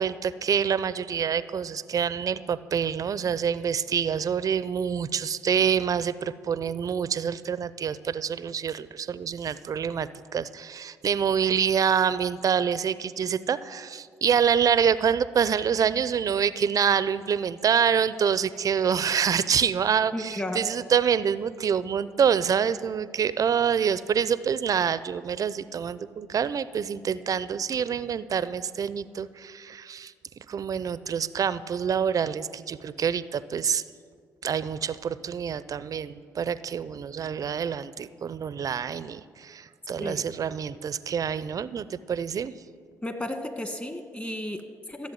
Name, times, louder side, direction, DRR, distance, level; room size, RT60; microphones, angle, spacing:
voice 1, 0.0-30.1 30.5-33.8 34.4-42.5, right 7 dB, 50° right, 16 dB, 0.6 m, -26 dB
voice 2, 20.1-20.7 40.0-40.3 43.0-45.1, left 1 dB, 20° left, 7 dB, 2.0 m, -34 dB
15.0 x 7.5 x 9.3 m, 2.1 s
hypercardioid pair, 50°, 8 cm